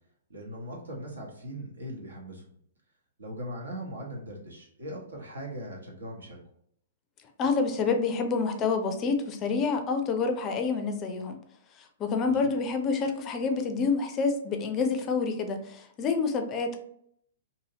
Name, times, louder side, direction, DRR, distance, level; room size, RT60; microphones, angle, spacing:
voice 1, 0.3-2.5 3.2-6.4 12.2-12.3, equal, 75° right, -1 dB, 1.0 m, -39 dB
voice 2, 7.4-11.4 12.0-16.8, left 4 dB, 25° left, 6 dB, 0.4 m, -28 dB
2.7 x 2.7 x 2.7 m, 0.69 s
figure-of-eight pair, 115°, 0 cm